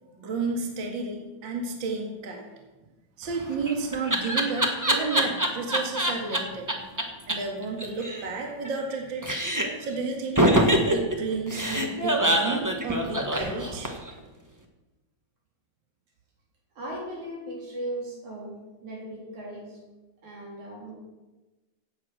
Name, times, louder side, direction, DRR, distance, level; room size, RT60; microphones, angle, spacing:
voice 1, 0.1-2.5 3.2-6.8 7.3-9.3 9.8-10.4 10.9-13.9, right 3 dB, 45° right, 1 dB, 2.4 m, -31 dB
Laughter, 3.3-6.4 6.7-6.8 7.0-7.1 7.3-7.4 7.6-9.0 9.2-9.9 10.4-14.1, right 1 dB, 20° right, 0.5 m, -24 dB
voice 2, 13.3-13.8 16.8-19.8 20.2-20.9, right 1 dB, 75° right, -2 dB, 5.0 m, -38 dB
16.5 x 8.6 x 6.3 m, 1.1 s
omnidirectional pair, 3.4 m